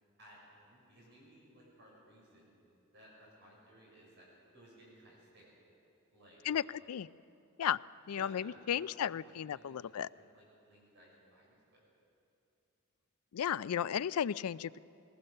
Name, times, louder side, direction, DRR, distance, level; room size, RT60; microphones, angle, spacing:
voice 1, 0.2-2.6 2.9-4.3 4.5-5.5 6.1-6.7 8.0-11.8, equal, 55° right, -4 dB, 6.3 m, -59 dB
voice 2, 6.4-7.1 7.6-7.8 8.1-10.1 13.3-14.8, left 9 dB, 85° left, 18 dB, 0.4 m, -34 dB
22.0 x 19.0 x 6.6 m, 2.7 s
head